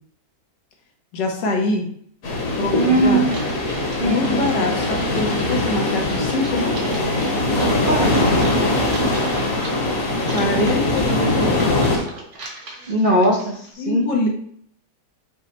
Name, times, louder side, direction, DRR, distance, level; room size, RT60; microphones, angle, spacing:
voice 1, 1.1-1.9 2.6-3.2 4.0-7.0 10.3-12.1 13.8-14.3, left 2 dB, 85° left, 2 dB, 1.5 m, -24 dB
sound 1, 2.2-12.0, left 2 dB, 55° left, 1.3 m, -21 dB
voice 2, 2.7-3.3 4.0-4.4 7.9-8.4 12.9-14.0, right 1 dB, 75° right, -2 dB, 0.4 m, -20 dB
Typing, 3.3-13.7, right 2 dB, 50° right, 1.1 m, -38 dB
5.4 x 2.1 x 4.2 m, 0.63 s
omnidirectional pair, 1.9 m